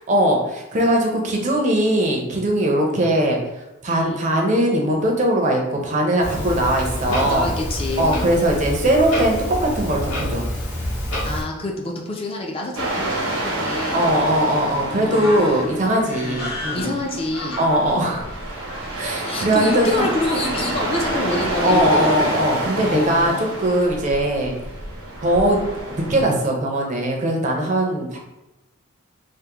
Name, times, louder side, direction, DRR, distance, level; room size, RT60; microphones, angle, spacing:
voice 1, 0.1-7.5 8.0-10.5 13.9-16.9 17.6-18.3 19.0-20.1 21.6-24.5 25.2-25.6 25.9-28.2, right 1 dB, 35° right, 1 dB, 0.5 m, -20 dB
voice 2, 3.9-4.2 6.4-6.5 7.2-8.3 11.2-14.0 14.9-15.6 16.2-16.4 16.7-18.1 19.3-22.3 22.7-23.4, left 2 dB, 25° left, 0 dB, 0.3 m, -27 dB
Clock, 6.2-11.4, equal, 70° left, 1.0 m, -27 dB
sound 1, 12.8-26.2, right 1 dB, 85° right, 0.8 m, -29 dB
sound 2, 15.1-21.1, left 1 dB, 50° left, 1.3 m, -35 dB
3.4 x 2.0 x 2.8 m, 0.97 s
head